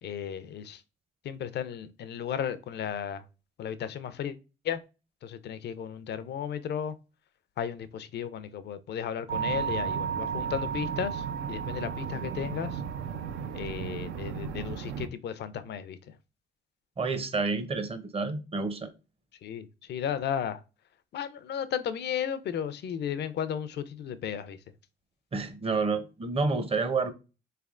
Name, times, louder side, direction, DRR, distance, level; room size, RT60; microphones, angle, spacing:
voice 1, 0.0-0.8 1.2-3.2 3.6-4.4 4.6-4.8 5.2-6.9 7.6-12.8 13.5-16.0 19.4-20.6 21.1-24.6, left 8 dB, 60° left, 0.4 m, -34 dB
sound 1, 9.3-15.1, right 7 dB, 85° right, 0.4 m, -33 dB
voice 2, 17.0-18.9 25.3-27.1, right 4 dB, 30° right, 0.6 m, -29 dB
3.6 x 3.3 x 2.4 m
cardioid pair, 90°, 20 cm